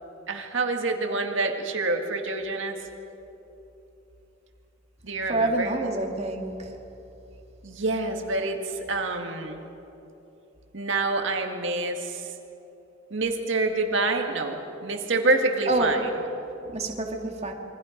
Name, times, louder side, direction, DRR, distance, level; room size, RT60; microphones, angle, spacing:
voice 1, 0.3-2.8 5.0-5.8 7.6-9.6 10.7-12.3 13.1-16.1, right 2 dB, 65° right, 3 dB, 2.1 m, -27 dB
voice 2, 5.3-6.7 15.7-15.9 16.7-17.5, right 2 dB, 35° right, 2 dB, 2.3 m, -27 dB
27.5 x 24.0 x 5.3 m, 3.0 s
head